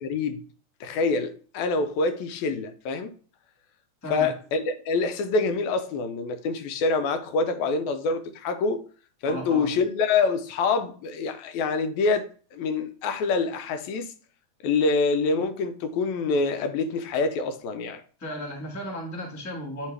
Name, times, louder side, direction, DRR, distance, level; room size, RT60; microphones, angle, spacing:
voice 1, 0.0-0.4 0.8-3.1 4.1-8.8 9.2-14.1 14.6-18.0, left 4 dB, 80° left, 1.9 m, -26 dB
voice 2, 9.2-9.7 18.2-19.9, equal, 15° left, 0.6 m, -35 dB
9.1 x 3.4 x 3.2 m
omnidirectional pair, 3.4 m